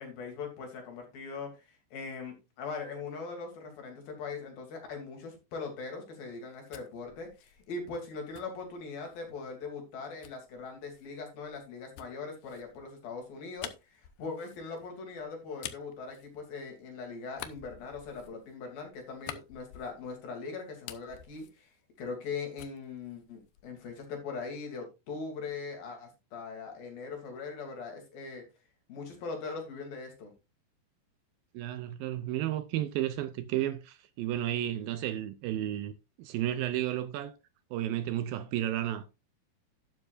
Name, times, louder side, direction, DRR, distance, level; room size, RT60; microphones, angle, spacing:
voice 1, 0.0-21.7 22.0-28.4 28.9-30.3, left 4 dB, 65° left, 4.6 m, -41 dB
sound 1, 6.3-9.3 10.2-16.9 17.3-20.3 20.6-22.3 22.6-23.9, left 12 dB, 85° left, 2.8 m, -49 dB
voice 2, 31.5-35.9 36.2-37.4 37.7-39.1, right 12 dB, 80° right, 2.2 m, -32 dB
12.0 x 9.5 x 2.5 m
omnidirectional pair, 4.4 m